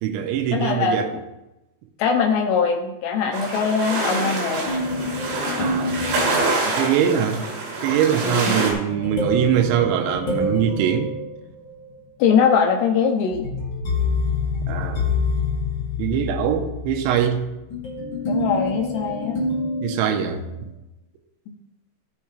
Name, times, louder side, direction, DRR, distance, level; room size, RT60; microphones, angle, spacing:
voice 1, 0.0-1.1 5.6-6.0 6.7-7.4 7.8-11.1 14.7-15.1 16.0-17.5 19.8-20.7, right 9 dB, 80° right, 5 dB, 3.0 m, -22 dB
voice 2, 0.5-1.1 2.0-4.8 8.2-8.6 12.2-13.5 18.3-19.4 21.5-21.6, left 6 dB, 85° left, 3 dB, 2.4 m, -21 dB
sound 1, 3.3-8.7, right 3 dB, 55° right, 3.7 m, -26 dB
sound 2, 4.6-7.3 8.9-11.9 13.3-20.6, left 3 dB, 45° left, 1.6 m, -27 dB
13.5 x 7.3 x 3.3 m, 0.96 s
omnidirectional pair, 5.7 m